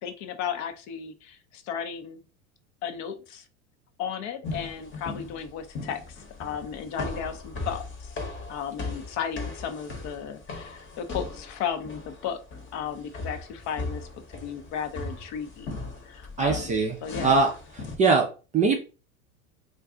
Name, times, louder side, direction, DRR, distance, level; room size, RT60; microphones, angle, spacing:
voice 1, 0.0-2.2 2.8-3.5 4.0-8.1 8.5-12.4 12.7-14.1 14.4-15.8 16.0-17.4, left 8 dB, 45° left, 9 dB, 0.5 m, -34 dB
sound 1, 4.4-18.0, left 3 dB, 30° left, 0.9 m, -38 dB
voice 2, 16.4-18.3 18.5-18.8, right 4 dB, 20° right, 2 dB, 0.4 m, -23 dB
2.5 x 2.2 x 3.7 m, 0.33 s
hypercardioid pair, 95°, 41 cm